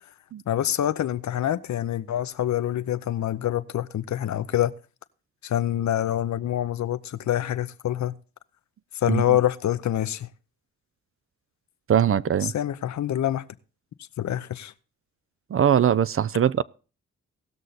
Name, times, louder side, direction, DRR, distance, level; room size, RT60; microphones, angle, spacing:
voice 1, 0.5-4.7 5.4-8.1 9.0-10.3 12.5-13.4 14.2-14.7, left 11 dB, 65° left, 0.7 m, -26 dB
voice 2, 11.9-12.5 15.5-16.6, right 9 dB, 45° right, 0.5 m, -21 dB
18.0 x 6.4 x 4.1 m
cardioid pair, 60°, 30 cm